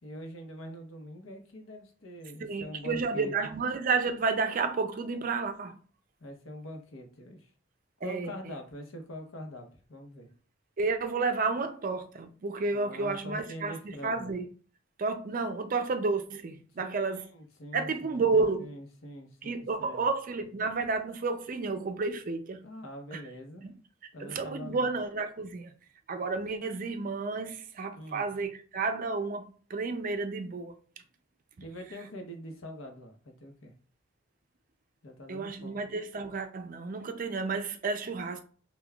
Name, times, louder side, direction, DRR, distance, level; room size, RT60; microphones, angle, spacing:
voice 1, 0.0-3.3 6.2-7.5 8.0-10.3 12.7-14.3 16.8-20.0 22.6-23.7 24.1-24.9 27.9-28.3 31.6-33.7 35.0-35.8, equal, 90° left, 0.8 m, -44 dB
voice 2, 2.4-5.8 8.0-8.3 10.8-14.5 15.0-17.3 17.7-18.7 19.4-22.6 23.1-23.2 23.6-23.7 24.2-25.7 26.1-29.4 29.7-30.7 35.3-38.4, right 4 dB, 45° right, 0.4 m, -31 dB
5.5 x 2.2 x 2.3 m
head